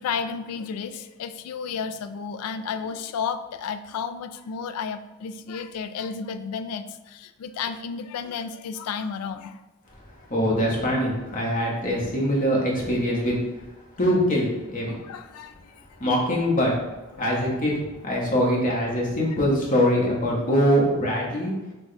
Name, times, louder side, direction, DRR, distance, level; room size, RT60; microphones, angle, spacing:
voice 1, 0.0-9.6 14.9-15.8 17.1-17.3, left 6 dB, 85° left, 12 dB, 0.3 m, -32 dB
voice 2, 10.3-13.4 14.0-15.0 16.0-16.7 17.2-17.8 18.0-21.5, equal, 40° left, -3 dB, 1.0 m, -23 dB
6.0 x 2.2 x 3.2 m, 1.1 s
head